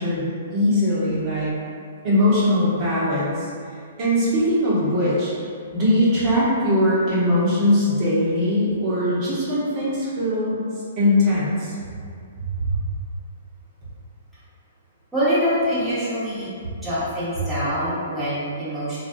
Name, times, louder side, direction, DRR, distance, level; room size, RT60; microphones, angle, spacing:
voice 1, 0.0-1.5 2.0-3.5 4.0-5.3 5.7-10.6 11.0-11.8 12.4-12.7, left 1 dB, 35° right, -9 dB, 1.0 m, -21 dB
voice 2, 15.1-16.5 16.8-19.0, equal, ahead, -14 dB, 1.0 m, -24 dB
3.2 x 2.4 x 2.6 m, 2.2 s
hypercardioid pair, 135°, 0 cm